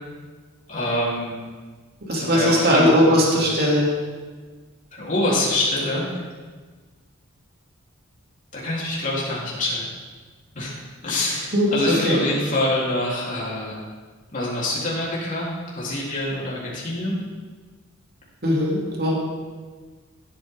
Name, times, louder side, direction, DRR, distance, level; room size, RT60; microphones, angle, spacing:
voice 1, 0.7-1.4 2.2-3.6 4.9-6.1 8.5-9.9 10.6-13.8 14.3-17.2, left 1 dB, 40° left, -6 dB, 3.6 m, -26 dB
voice 2, 2.1-3.9 11.5-12.2 18.4-19.2, equal, 50° right, -3 dB, 2.9 m, -19 dB
16.5 x 8.8 x 3.8 m, 1.4 s
head